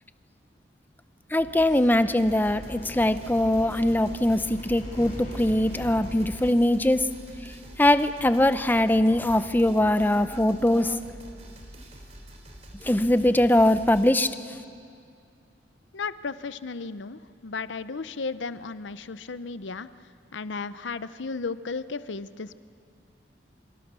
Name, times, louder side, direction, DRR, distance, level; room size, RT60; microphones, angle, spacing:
voice 1, 1.3-7.1 7.8-11.2 12.8-14.3, left 1 dB, 10° left, 11 dB, 0.7 m, -22 dB
sound 1, 1.4-6.5, equal, 40° left, 7.6 m, -41 dB
sound 2, 2.2-14.1, right 1 dB, 35° right, 3.0 m, -45 dB
voice 2, 15.9-19.9 20.3-22.6, left 4 dB, 75° left, 14 dB, 0.7 m, -34 dB
26.5 x 25.5 x 6.2 m, 2.4 s
head